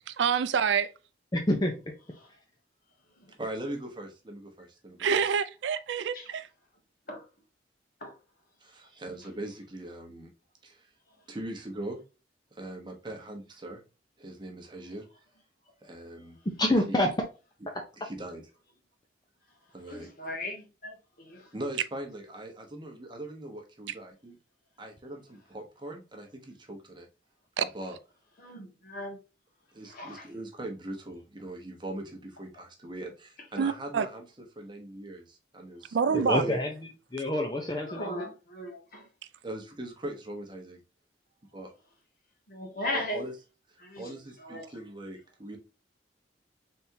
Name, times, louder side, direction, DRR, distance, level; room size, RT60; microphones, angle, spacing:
voice 1, 0.1-0.9 5.0-6.4 23.9-24.0 27.6-27.7 33.6-34.1 35.9-36.4, right 6 dB, 75° right, 0.4 m, -27 dB
voice 2, 1.3-1.8 16.5-17.1 17.7-17.8 36.1-36.7 37.1-38.3, left 1 dB, 20° left, 0.6 m, -27 dB
voice 3, 3.4-5.2 8.6-10.3 10.6-10.9 11.3-12.0 12.5-13.8 14.2-15.1 15.8-16.4 16.9-17.0 18.0-18.4 19.7-20.1 21.5-24.3 24.8-27.1 27.7-28.0 29.7-34.2 34.6-36.6 39.4-40.8 41.5-41.7 42.9-43.4 43.7-45.6, right 1 dB, 25° right, 1.0 m, -41 dB
voice 4, 19.9-21.4 28.4-29.2 29.9-30.2 37.9-39.0 42.5-43.2 43.8-44.1 44.4-44.7, left 1 dB, 50° left, 1.5 m, -37 dB
4.2 x 3.5 x 2.7 m
head